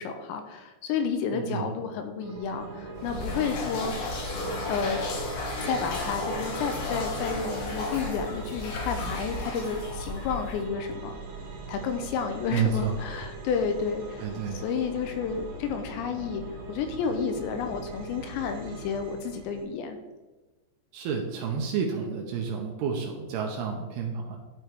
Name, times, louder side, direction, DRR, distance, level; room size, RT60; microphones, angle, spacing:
voice 1, 0.0-3.9 4.6-5.0 5.6-11.2 11.7-14.2 14.6-16.4 16.7-20.0, left 6 dB, 85° left, 6 dB, 2.9 m, -31 dB
voice 2, 1.3-1.7 12.5-13.0 14.2-14.6 20.9-24.4, right 6 dB, 80° right, 1 dB, 2.5 m, -30 dB
sound 1, 2.2-19.6, right 1 dB, 65° right, 3.3 m, -40 dB
sound 2, 3.0-10.6, left 2 dB, 65° left, 2.2 m, -34 dB
12.0 x 4.6 x 3.3 m, 1.2 s
omnidirectional pair, 5.2 m